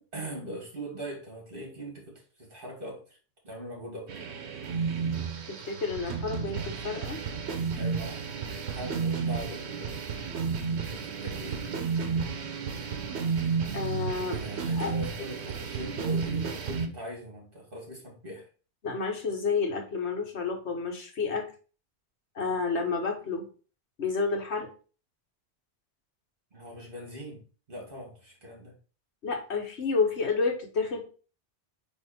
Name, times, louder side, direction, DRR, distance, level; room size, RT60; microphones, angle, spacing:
voice 1, 0.1-3.2 3.4-4.1 7.7-10.0 10.9-11.7 14.3-18.5 26.5-27.4 27.7-28.7, right 1 dB, 55° right, 0 dB, 2.4 m, -41 dB
sound 1, 4.1-16.9, right 5 dB, 80° right, 1.1 m, -32 dB
voice 2, 5.5-7.2 13.7-14.4 14.7-14.9 18.8-21.5 22.3-23.5 24.0-24.7 29.2-31.0, left 4 dB, 85° left, 3 dB, 1.6 m, -30 dB
8.4 x 2.9 x 4.3 m, 0.38 s
omnidirectional pair, 1.1 m